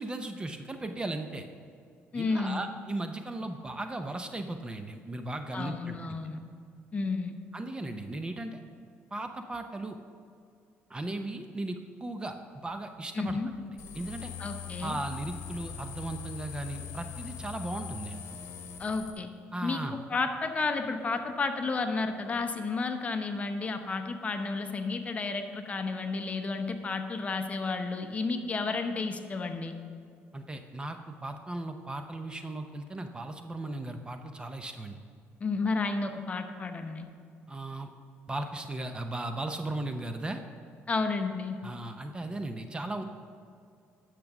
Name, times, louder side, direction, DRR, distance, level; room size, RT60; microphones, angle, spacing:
voice 1, 0.0-1.5 2.1-6.0 7.5-8.6 9.1-10.0 10.9-12.4 12.6-13.4 13.9-14.3 14.8-18.2 19.5-20.0 30.3-35.0 37.5-37.9 38.3-40.4 41.6-43.0, right 2 dB, 20° right, 7 dB, 0.6 m, -36 dB
voice 2, 2.1-2.7 5.5-6.4 6.9-7.4 13.1-13.5 14.4-15.0 18.8-19.3 19.6-29.7 35.4-37.1 40.9-41.6, left 3 dB, 30° left, 6 dB, 0.9 m, -32 dB
sound 1, 13.8-19.1, left 7 dB, 70° left, 1.1 m, -41 dB
10.5 x 6.6 x 6.0 m, 2.3 s
cardioid pair, 115°, 5 cm